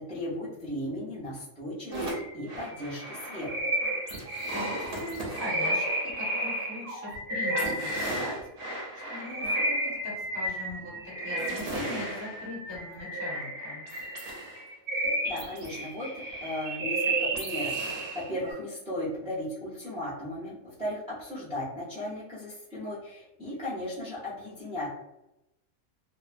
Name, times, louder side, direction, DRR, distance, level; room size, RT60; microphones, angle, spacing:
voice 1, 0.0-3.6 14.9-24.9, left 1 dB, 10° right, -9 dB, 0.4 m, -36 dB
sound 1, 1.9-18.5, right 1 dB, 50° right, 0.8 m, -32 dB
voice 2, 4.5-8.4 9.0-13.8, left 1 dB, 20° left, -7 dB, 1.1 m, -41 dB
2.6 x 2.2 x 2.5 m, 0.89 s
omnidirectional pair, 1.5 m